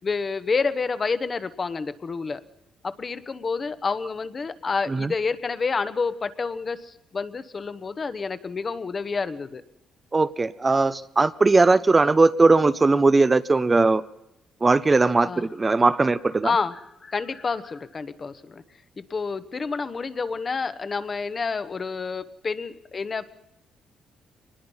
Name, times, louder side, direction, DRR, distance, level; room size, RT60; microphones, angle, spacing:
voice 1, 0.0-2.4 2.8-9.6 15.2-15.5 16.4-18.6 19.0-23.3, left 4 dB, 35° left, 12 dB, 1.1 m, -29 dB
voice 2, 10.1-14.0 14.6-16.5, right 3 dB, 25° right, 13 dB, 0.6 m, -19 dB
23.0 x 20.0 x 5.6 m, 0.85 s
cardioid pair, 90°, 0 cm